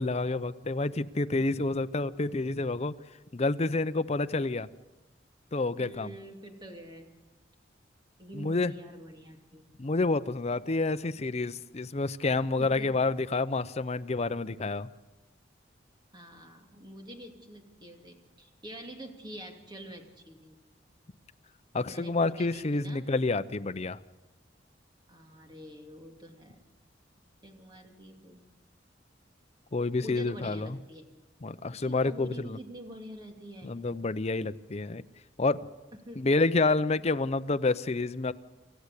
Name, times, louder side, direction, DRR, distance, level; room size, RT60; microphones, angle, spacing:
voice 1, 0.0-2.9 3.3-4.7 5.5-6.1 8.3-8.7 9.8-14.9 21.7-24.0 29.7-30.8 31.4-32.6 33.6-35.0 35.4-35.6 36.2-38.3, left 3 dB, 35° left, 12 dB, 0.6 m, -28 dB
voice 2, 5.8-7.1 8.2-9.7 12.6-12.9 16.1-20.6 21.7-23.1 25.1-26.7 27.4-28.5 30.0-31.1 31.7-33.8 35.9-36.3, equal, 25° right, 3 dB, 2.7 m, -46 dB
27.0 x 14.5 x 8.3 m, 1.1 s
head